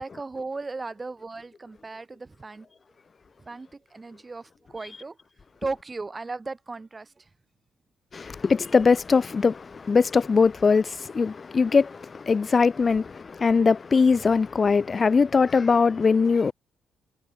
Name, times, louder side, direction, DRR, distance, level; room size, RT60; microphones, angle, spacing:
voice 1, 0.0-2.7 3.4-5.2 5.6-7.3, right 3 dB, 25° right, 6.5 m, -36 dB
voice 2, 8.1-16.5, left 5 dB, 40° left, 1.4 m, -21 dB
supercardioid pair, 70°, 0 cm